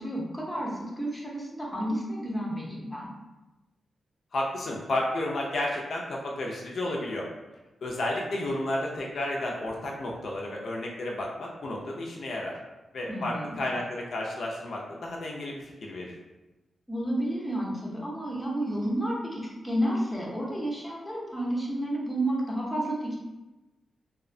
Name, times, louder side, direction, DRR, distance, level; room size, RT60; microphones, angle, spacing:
voice 1, 0.0-3.1 13.1-13.6 16.9-23.2, right 1 dB, 5° left, -4 dB, 0.5 m, -31 dB
voice 2, 4.3-7.3 7.8-12.6 12.9-16.1, left 1 dB, 60° left, -2 dB, 0.4 m, -32 dB
2.7 x 2.1 x 2.5 m, 1.1 s
wide cardioid pair, 140°, 0 cm